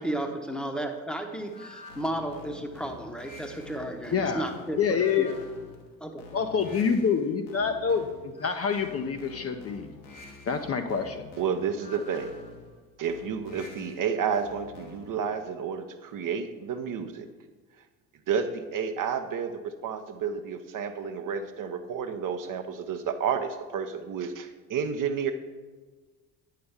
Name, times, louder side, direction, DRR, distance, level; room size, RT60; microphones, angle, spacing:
voice 1, 0.0-5.3 6.0-6.1, right 1 dB, ahead, 4 dB, 0.9 m, -33 dB
sound 1, 1.5-15.3, left 3 dB, 75° left, 1.2 m, -47 dB
voice 2, 4.1-4.5 4.7-5.4 6.3-9.9 10.5-11.3, left 6 dB, 30° left, 6 dB, 0.6 m, -27 dB
voice 3, 11.4-12.3 13.0-17.3 18.3-25.3, right 7 dB, 45° right, 7 dB, 0.7 m, -31 dB
8.5 x 5.7 x 3.5 m, 1.3 s
hypercardioid pair, 55°, 47 cm